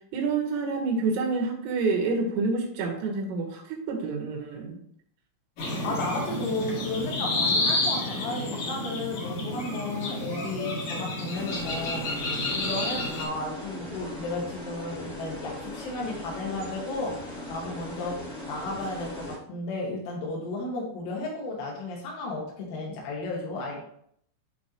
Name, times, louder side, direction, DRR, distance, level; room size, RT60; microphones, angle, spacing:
voice 1, 0.1-4.8, right 4 dB, 75° right, 0 dB, 3.8 m, -28 dB
sound 1, 5.6-13.2, left 1 dB, 50° left, 2.5 m, -30 dB
voice 2, 5.8-23.8, left 2 dB, 85° left, -2 dB, 4.4 m, -34 dB
sound 2, 11.3-19.3, left 1 dB, 10° left, 0.3 m, -39 dB
11.0 x 3.9 x 3.0 m, 0.68 s
omnidirectional pair, 5.9 m